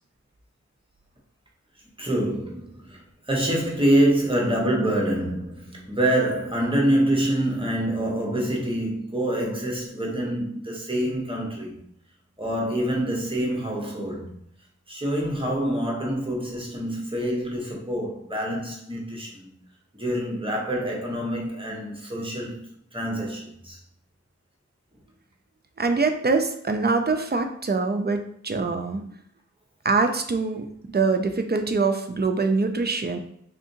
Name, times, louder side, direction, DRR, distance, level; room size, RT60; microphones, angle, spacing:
voice 1, 2.0-11.9 12.4-14.3 14.9-19.5 19.9-23.8, right 1 dB, 20° right, 1.0 m, -26 dB
voice 2, 25.8-29.0 29.8-33.2, right 4 dB, 35° right, 0.4 m, -24 dB
3.6 x 2.6 x 2.6 m
wide cardioid pair, 40°, 29 cm